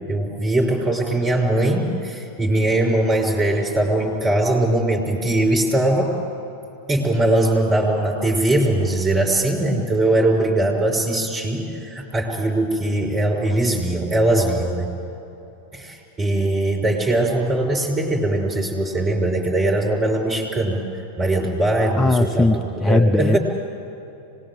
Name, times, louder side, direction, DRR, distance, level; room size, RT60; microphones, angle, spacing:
voice 1, 0.0-6.1 6.9-14.9 15.7-20.9 21.2-22.5 22.9-23.4, right 1 dB, 20° right, 1 dB, 6.0 m, -21 dB
voice 2, 22.0-23.4, left 2 dB, 10° left, 7 dB, 0.6 m, -18 dB
25.0 x 21.0 x 8.0 m, 2.9 s
figure-of-eight pair, 90°, 0 cm